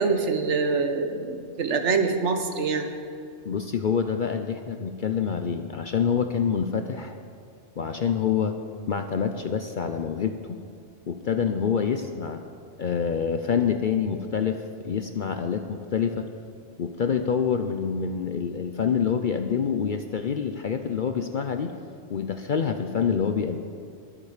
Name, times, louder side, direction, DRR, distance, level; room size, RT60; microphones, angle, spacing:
voice 1, 0.0-2.9, right 4 dB, 70° right, 6 dB, 1.3 m, -25 dB
voice 2, 3.5-7.2 7.8-8.5 8.9-10.6 11.1-12.4 12.8-16.3 16.8-21.7 22.1-23.6, left 7 dB, 55° left, 7 dB, 0.6 m, -26 dB
21.5 x 7.5 x 4.9 m, 2.4 s
omnidirectional pair, 1.3 m